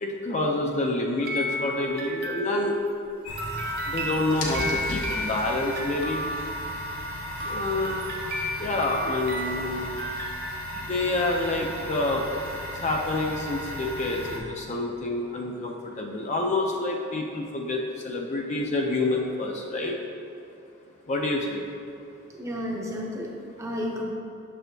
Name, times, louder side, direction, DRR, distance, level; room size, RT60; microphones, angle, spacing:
voice 1, 0.0-2.7 3.9-6.2 7.4-8.0 8.6-9.8 10.9-12.2 12.8-17.8 18.0-19.9 21.1-21.6, left 2 dB, 30° left, 0 dB, 0.4 m, -28 dB
sound 1, 1.2-2.8 3.4-10.3, equal, 45° right, 0.8 m, -33 dB
sound 2, 3.2-14.4, equal, 85° left, 1.0 m, -35 dB
voice 2, 22.3-24.1, equal, 15° right, -2 dB, 0.6 m, -32 dB
6.8 x 6.2 x 2.7 m, 2.6 s
head